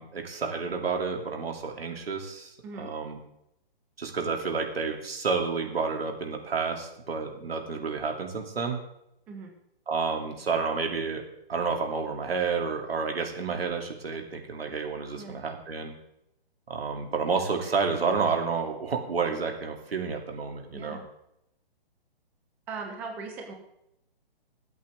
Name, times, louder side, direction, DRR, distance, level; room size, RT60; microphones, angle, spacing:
voice 1, 0.0-3.2 4.0-8.8 9.9-11.2 11.5-15.9 16.7-21.0, right 5 dB, 75° right, 3 dB, 2.9 m, -30 dB
voice 2, 20.7-21.0 22.7-23.5, right 4 dB, 5° right, 3 dB, 0.5 m, -39 dB
21.5 x 8.3 x 3.6 m, 0.81 s
hypercardioid pair, 150°, 30 cm